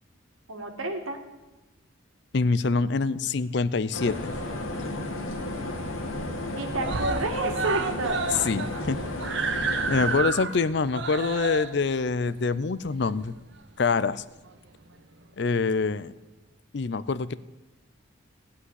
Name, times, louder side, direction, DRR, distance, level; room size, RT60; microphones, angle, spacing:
voice 1, 0.5-1.2 6.5-8.2, right 2 dB, 85° right, 4 dB, 2.0 m, -30 dB
voice 2, 2.3-4.3 8.4-9.0 9.9-13.3 13.8-14.2 15.4-16.1 16.7-17.4, left 4 dB, 55° left, 17 dB, 0.5 m, -25 dB
sound 1, 3.9-10.2, left 1 dB, 85° left, 2.3 m, -33 dB
Screaming, 3.9-4.8 5.2-5.3 5.6-5.7 6.0-6.5 6.8-13.6 14.5-14.6, right 4 dB, 60° right, 0.9 m, -32 dB
16.0 x 5.6 x 9.7 m, 1.1 s
head